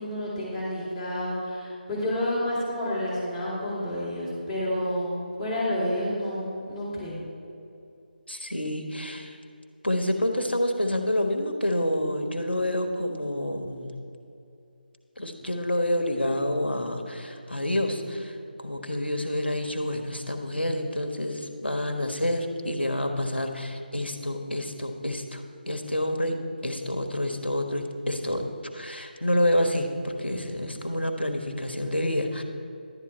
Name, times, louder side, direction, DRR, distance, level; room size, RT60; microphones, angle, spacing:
voice 1, 0.0-7.2, left 1 dB, 5° left, -11 dB, 2.9 m, -29 dB
voice 2, 8.3-9.4 9.8-14.0 15.2-28.4 28.7-32.4, left 1 dB, 90° left, 5 dB, 1.2 m, -28 dB
11.5 x 8.9 x 4.3 m, 2.6 s
figure-of-eight pair, 155°, 6 cm